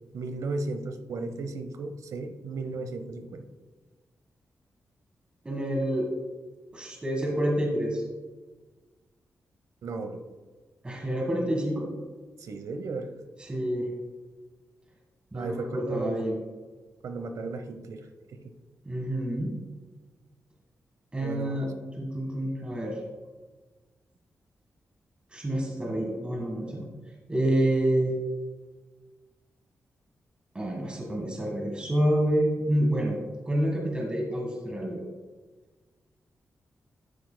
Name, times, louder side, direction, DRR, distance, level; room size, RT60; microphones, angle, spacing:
voice 1, 0.1-3.5 9.8-10.2 12.4-13.1 15.3-16.1 17.0-18.1 18.3-18.5 21.2-21.7, right 3 dB, 85° right, 8 dB, 0.8 m, -35 dB
voice 2, 5.4-6.1 6.7-8.1 10.8-11.9 13.4-13.9 15.3-16.4 18.8-19.5 21.1-23.0 25.3-26.9 27.3-28.2 30.5-33.2 33.4-35.0, right 1 dB, 20° right, -1 dB, 1.5 m, -28 dB
12.0 x 9.4 x 2.2 m, 1.3 s
wide cardioid pair, 140°, 6 cm